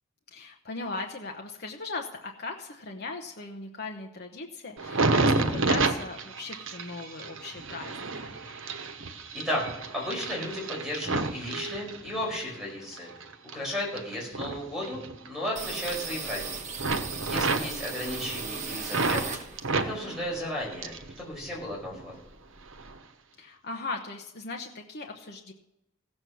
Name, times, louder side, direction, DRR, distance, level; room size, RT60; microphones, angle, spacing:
voice 1, 0.3-8.4 17.2-17.4 23.4-25.5, left 3 dB, 50° left, 1 dB, 1.1 m, -38 dB
sound 1, 4.8-12.4 12.9-15.5 15.7-16.5 16.8-19.3 19.6-21.1 21.4-22.2 22.7-22.9, right 3 dB, 70° right, 1.0 m, -30 dB
voice 2, 9.3-13.1 13.5-16.6 17.2-19.4 19.7-22.3, left 1 dB, ahead, -3 dB, 5.1 m, -34 dB
sound 2, 15.6-19.9 20.2-21.6 21.9-22.0 22.3-23.0, right 5 dB, 35° right, 1.3 m, -38 dB
15.5 x 7.5 x 6.2 m, 0.87 s
head